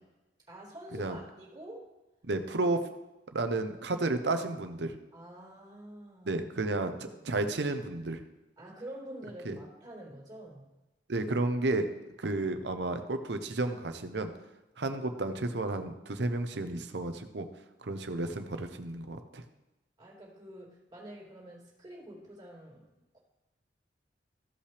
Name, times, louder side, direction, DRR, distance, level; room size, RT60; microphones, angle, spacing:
voice 1, 0.5-1.9 5.1-6.4 7.1-7.2 8.6-10.7 20.0-22.9 23.1-23.2, right 1 dB, 25° right, -6 dB, 3.0 m, -47 dB
voice 2, 2.2-2.8 3.3-4.9 6.3-8.2 9.4-9.6 11.1-11.9 12.2-14.3 14.8-17.5 17.8-19.4, right 2 dB, 70° right, 8 dB, 0.8 m, -32 dB
15.0 x 5.6 x 3.4 m, 1.0 s
head